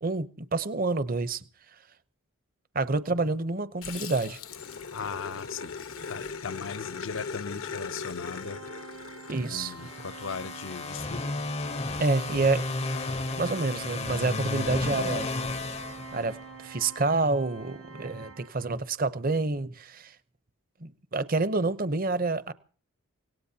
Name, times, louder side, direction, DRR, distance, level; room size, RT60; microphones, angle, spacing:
voice 1, 0.0-1.4 2.7-4.4 9.3-9.7 12.0-12.7 13.4-15.3 16.1-20.1 20.8-22.5, right 3 dB, 40° right, 0.8 m, -28 dB
Growling, 3.8-10.5, left 5 dB, 80° left, 1.2 m, -39 dB
voice 2, 4.9-5.7 6.1-8.6 9.5-11.3, left 5 dB, 65° left, 0.6 m, -38 dB
Organ, 8.2-19.0, right 4 dB, 70° right, 1.0 m, -47 dB
sound 1, 9.8-16.7, left 3 dB, 30° left, 0.6 m, -33 dB
25.5 x 17.5 x 2.8 m
head